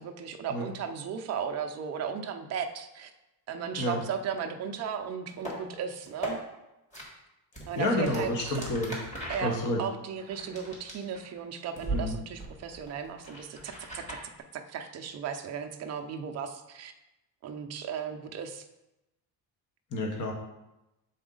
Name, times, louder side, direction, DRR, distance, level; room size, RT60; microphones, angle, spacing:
voice 1, 0.0-3.1 3.5-6.4 7.7-8.6 9.3-14.2 14.5-16.9 17.4-18.6, right 7 dB, 35° right, 6 dB, 0.5 m, -36 dB
sound 1, 5.3-5.6 6.0-6.3 6.9-7.0 7.5-11.4 11.8-12.0 12.3-14.2, right 1 dB, 15° left, 1.6 m, -39 dB
voice 2, 7.8-9.0 9.4-9.8 11.9-12.1 19.9-20.3, left 1 dB, 40° left, 1 dB, 1.1 m, -29 dB
7.0 x 4.1 x 3.8 m, 0.94 s
cardioid pair, 155°, 45 cm